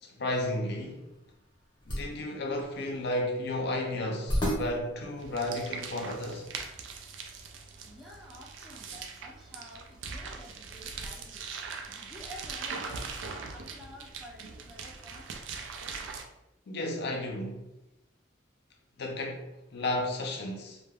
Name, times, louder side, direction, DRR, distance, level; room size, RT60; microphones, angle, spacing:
voice 1, 0.0-1.1 1.9-6.5 16.7-17.6 19.0-20.8, left 1 dB, 60° left, 0.5 m, -33 dB
sound 1, 0.7-6.1, equal, 25° left, 0.8 m, -36 dB
sound 2, 5.2-16.2, right 5 dB, 75° right, 0.3 m, -41 dB
voice 2, 7.9-15.3, left 1 dB, ahead, 0.5 m, -50 dB
2.2 x 2.1 x 3.3 m
head